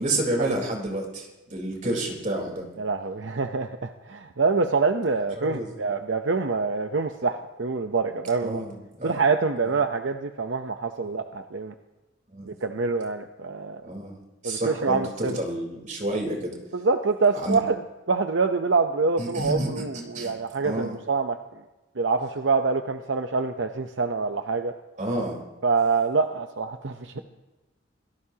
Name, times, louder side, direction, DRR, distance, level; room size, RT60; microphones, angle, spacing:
voice 1, 0.0-2.7 5.4-5.7 8.4-9.2 12.3-12.5 13.8-14.2 14.4-16.6 17.4-17.6 19.2-20.4 20.6-20.9 25.0-25.4, right 1 dB, 40° right, 0 dB, 4.0 m, -29 dB
voice 2, 2.8-8.6 9.0-11.7 12.5-13.8 14.4-15.4 16.7-17.8 18.1-21.4 22.0-24.7 25.6-27.2, right 4 dB, 75° right, 6 dB, 0.8 m, -25 dB
26.0 x 17.5 x 2.9 m, 1.1 s
head